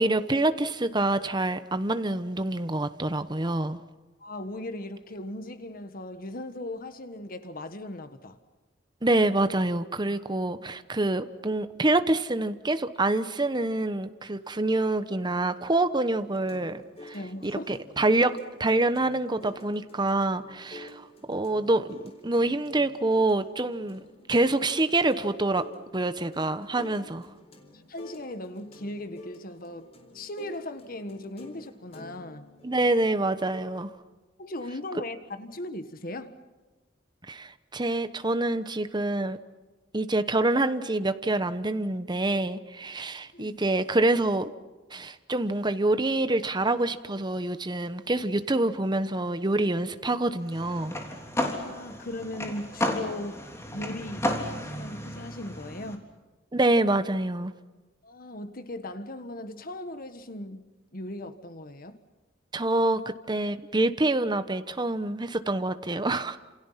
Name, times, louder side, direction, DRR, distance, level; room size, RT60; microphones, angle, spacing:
voice 1, 0.0-3.8 9.0-18.3 18.6-24.0 24.3-25.6 25.9-27.3 32.6-33.9 37.3-39.4 39.9-44.5 44.9-50.9 56.5-57.5 62.5-63.0 63.3-66.4, right 2 dB, 25° right, 1.0 m, -26 dB
voice 2, 4.2-8.4 17.1-17.7 27.7-32.5 34.4-36.3 43.3-43.6 51.4-53.4 53.7-56.1 58.0-62.0, left 1 dB, 50° left, 1.5 m, -38 dB
sound 1, 16.2-33.8, left 1 dB, 35° left, 4.1 m, -49 dB
sound 2, 50.5-56.0, left 1 dB, 15° left, 3.4 m, -33 dB
30.0 x 28.0 x 5.8 m
head